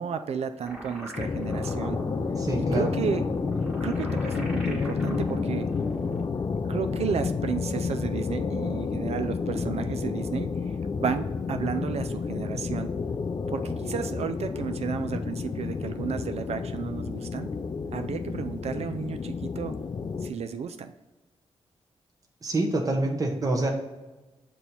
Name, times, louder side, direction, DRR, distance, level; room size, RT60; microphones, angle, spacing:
voice 1, 0.0-2.0 2.7-3.2 3.8-5.7 6.7-10.5 11.0-12.9 13.5-17.5 17.9-19.8 20.2-20.9, right 7 dB, 65° right, 8 dB, 0.4 m, -32 dB
sound 1, 0.6-6.3, equal, 5° right, 1.3 m, -39 dB
sound 2, 1.2-20.3, left 5 dB, 40° left, 0.4 m, -30 dB
voice 2, 2.4-2.9 22.4-23.7, right 2 dB, 30° right, 1 dB, 0.9 m, -26 dB
6.1 x 2.9 x 5.3 m, 1.1 s
cardioid pair, 65°, 11 cm